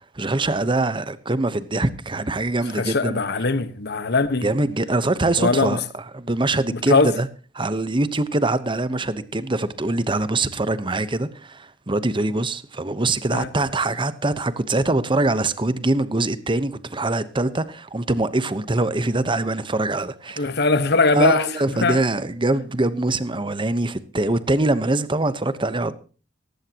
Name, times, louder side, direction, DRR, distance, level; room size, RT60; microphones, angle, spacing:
voice 1, 0.1-3.2 4.4-7.3 7.5-20.5 21.1-25.9, right 2 dB, 25° right, 1.0 m, -23 dB
voice 2, 2.8-4.5 5.4-5.8 6.7-7.1 13.3-13.5 20.4-21.5 21.8-22.0, left 3 dB, 60° left, 1.3 m, -20 dB
18.0 x 15.0 x 2.9 m
head